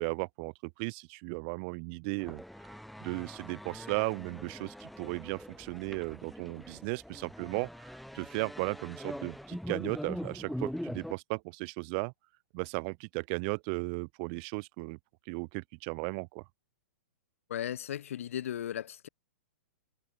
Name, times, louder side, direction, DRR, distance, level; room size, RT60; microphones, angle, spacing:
voice 1, 0.0-2.7 3.0-12.1 12.5-15.0 15.3-16.4, right 35 dB, 40° right, 1.5 m, -36 dB
sound 1, 2.2-11.1, equal, ahead, 2.7 m, -42 dB
voice 2, 17.5-19.1, left 10 dB, 70° left, 5.8 m, -36 dB
hypercardioid pair, 135°, 8 cm